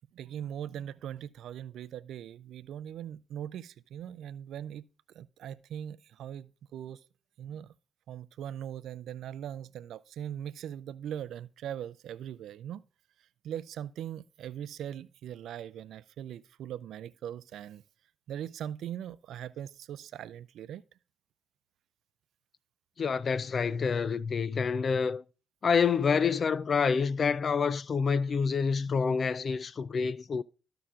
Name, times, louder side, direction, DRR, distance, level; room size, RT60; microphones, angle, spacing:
voice 1, 0.1-4.9 5.1-7.0 7.4-7.7 8.1-12.8 13.4-17.8 18.3-20.8, right 10 dB, 75° right, 0.4 m, -40 dB
voice 2, 23.0-25.2 25.6-30.4, left 5 dB, 50° left, 0.4 m, -27 dB
14.0 x 5.7 x 2.4 m
supercardioid pair, 55°, 0 cm